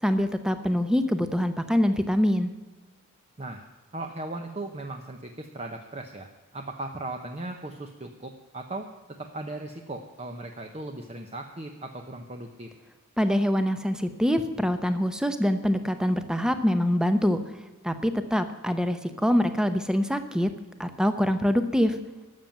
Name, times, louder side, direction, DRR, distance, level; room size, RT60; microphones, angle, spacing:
voice 1, 0.0-2.5 13.2-17.4 17.8-20.5 20.8-22.0, equal, 5° right, 9 dB, 0.8 m, -24 dB
voice 2, 3.9-8.9 9.2-12.7, right 2 dB, 30° right, 4 dB, 0.8 m, -37 dB
12.5 x 7.3 x 9.1 m, 1.2 s
head